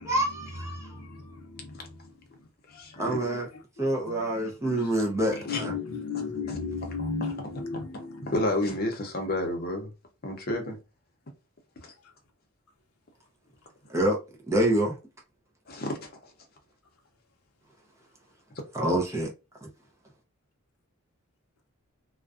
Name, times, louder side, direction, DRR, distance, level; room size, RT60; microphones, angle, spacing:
voice 1, 0.1-0.9 3.0-3.5 3.8-5.7 13.9-14.2 14.5-15.0 18.7-19.3 19.6-19.7, right 1 dB, 15° right, 0.5 m, -26 dB
voice 2, 2.7-3.2 5.5-5.6 6.5-6.6 7.0-7.3 8.3-9.9 10.2-10.8 11.8-11.9 15.7-16.1, left 1 dB, 45° left, 0.6 m, -30 dB
voice 3, 5.5-7.8, left 5 dB, 85° left, 0.6 m, -32 dB
2.4 x 2.2 x 2.3 m
head